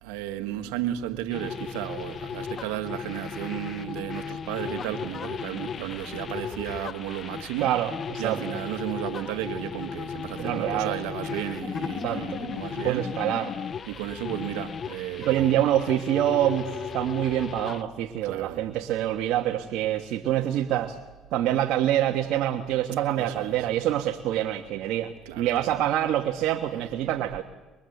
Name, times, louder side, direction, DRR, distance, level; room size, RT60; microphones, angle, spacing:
voice 1, 0.0-7.7 8.2-13.1 13.9-15.6 18.2-18.6 23.1-23.6 25.2-25.8, right 12 dB, 90° right, 1.6 m, -33 dB
sound 1, 1.3-17.8, left 7 dB, 45° left, 0.7 m, -36 dB
voice 2, 7.6-8.6 10.4-11.0 12.0-12.5 12.8-13.6 15.2-21.0 21.3-27.4, right 12 dB, 75° right, 1.3 m, -26 dB
23.5 x 22.5 x 7.9 m
supercardioid pair, 80°, 0 cm